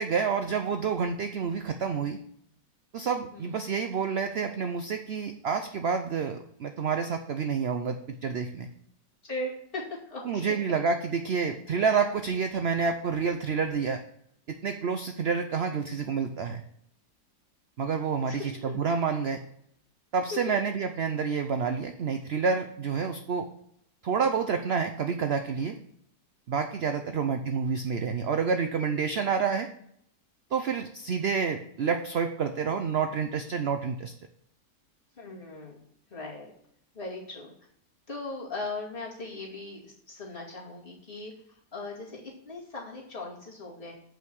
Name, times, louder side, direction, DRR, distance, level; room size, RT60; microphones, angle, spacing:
voice 1, 0.0-2.2 2.9-8.7 10.3-14.0 14.5-16.6 17.8-19.4 20.1-23.5 24.0-25.8 26.5-29.7 30.5-34.1, right 6 dB, 65° right, 7 dB, 0.6 m, -28 dB
voice 2, 9.2-10.6 18.2-18.7 20.3-20.5 26.9-27.3 35.2-35.8 36.1-36.5 36.9-37.5 38.1-43.9, left 2 dB, 30° left, -5 dB, 2.6 m, -39 dB
7.5 x 5.7 x 6.2 m, 0.70 s
omnidirectional pair, 1.8 m